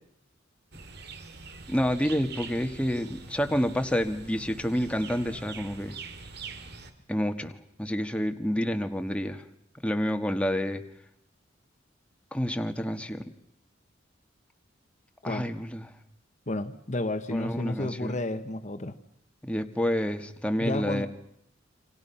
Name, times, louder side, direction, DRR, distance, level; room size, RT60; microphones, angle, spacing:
sound 1, 0.7-6.9, right 4 dB, 60° right, 2.9 m, -44 dB
voice 1, 1.7-5.9 7.1-9.4 9.8-10.8 12.3-13.2 15.2-15.9 17.3-18.2 19.4-21.1, equal, 5° left, 6 dB, 1.7 m, -29 dB
voice 2, 16.5-19.0 20.6-21.1, left 1 dB, 40° left, 9 dB, 1.3 m, -31 dB
29.0 x 26.5 x 5.8 m, 0.76 s
head